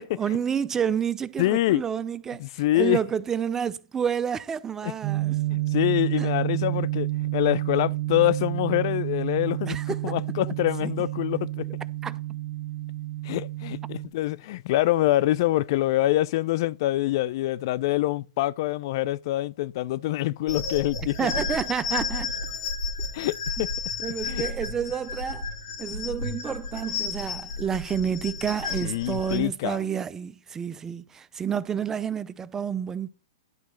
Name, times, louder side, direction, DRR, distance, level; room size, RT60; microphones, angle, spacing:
voice 1, 0.2-5.4 6.2-6.3 9.7-10.2 10.8-11.0 12.0-12.2 21.2-22.3 23.6-23.7 24.0-25.5 25.8-33.1, right 8 dB, 15° right, 0.5 m, -29 dB
voice 2, 1.4-1.8 2.4-3.0 4.8-4.9 5.5-11.6 13.2-21.3 23.1-23.7 24.2-24.4 28.8-29.8, left 15 dB, 55° left, 0.4 m, -25 dB
sound 1, 5.0-14.1, right 17 dB, 40° right, 1.1 m, -30 dB
sound 2, 20.5-29.4, left 4 dB, 75° left, 2.7 m, -32 dB
11.0 x 4.0 x 6.3 m
hypercardioid pair, 130°, 3 cm